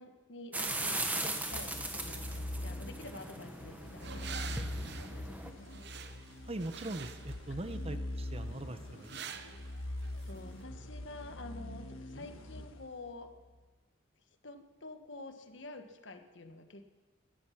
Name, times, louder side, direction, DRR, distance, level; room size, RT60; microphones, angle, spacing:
voice 1, 0.0-5.8 9.7-9.8 10.3-13.3 14.4-16.9, left 2 dB, 65° left, 7 dB, 1.3 m, -49 dB
sound 1, 0.5-5.5, right 2 dB, 10° right, 1.1 m, -39 dB
sound 2, 1.5-13.4, left 1 dB, 90° left, 1.4 m, -43 dB
sound 3, 2.3-10.6, right 7 dB, 55° right, 0.8 m, -49 dB
voice 2, 6.4-9.3, right 1 dB, 30° right, 10 dB, 0.8 m, -41 dB
16.5 x 12.5 x 5.9 m, 1.3 s
head